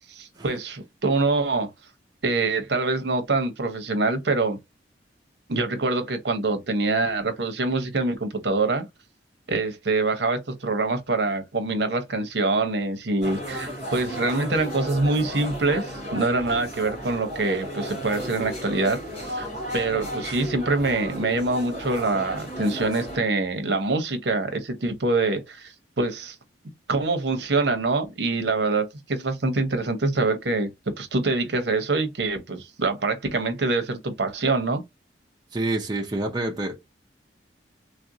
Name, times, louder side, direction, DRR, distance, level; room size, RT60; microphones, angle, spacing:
voice 1, 0.1-1.7 2.2-4.6 5.5-8.8 9.5-19.5 19.7-26.4 26.9-30.7 31.0-34.8, right 3 dB, 65° right, 0.8 m, -25 dB
sound 1, 13.2-23.2, equal, 40° left, 2.0 m, -34 dB
voice 2, 35.5-36.8, right 2 dB, 20° right, 0.6 m, -27 dB
3.2 x 2.6 x 2.6 m
head